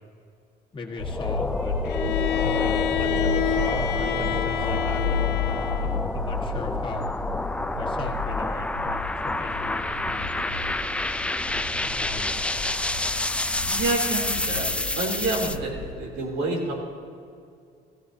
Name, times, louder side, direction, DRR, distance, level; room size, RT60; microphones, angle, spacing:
voice 1, 0.7-1.8 2.4-5.2 5.8-7.1 7.7-10.4 11.8-12.4, left 3 dB, 30° left, 0 dB, 1.5 m, -38 dB
sound 1, 1.0-15.6, left 2 dB, 5° left, 0.3 m, -29 dB
sound 2, 1.0-15.9, left 3 dB, 55° right, 2.4 m, -32 dB
Bowed string instrument, 1.8-6.1, left 11 dB, 75° left, 0.6 m, -28 dB
voice 2, 13.6-14.7 14.9-16.7, right 2 dB, 85° right, -1 dB, 3.0 m, -28 dB
17.0 x 15.0 x 2.7 m, 2.3 s
cardioid pair, 110°, 17 cm